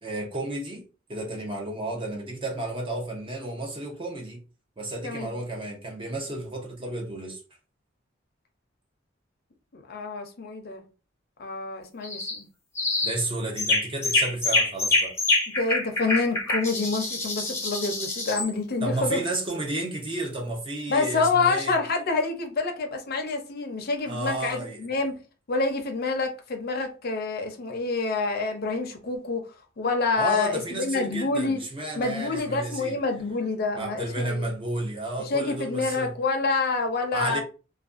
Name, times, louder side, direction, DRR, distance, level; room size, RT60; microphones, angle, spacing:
voice 1, 0.0-0.8 1.1-4.4 4.8-7.4 13.0-15.1 18.8-21.7 24.1-24.8 30.2-32.9 33.8-36.1 37.1-37.4, right 1 dB, 25° right, 0.6 m, -32 dB
voice 2, 9.7-10.8 11.4-12.5 15.5-19.2 20.9-25.2 25.5-29.4 29.8-31.6 32.0-34.4 35.2-37.4, left 3 dB, 55° left, 0.6 m, -27 dB
sound 1, 12.0-12.4 12.8-13.2 13.6-18.5, left 2 dB, 15° left, 0.6 m, -26 dB
2.4 x 2.2 x 2.4 m
head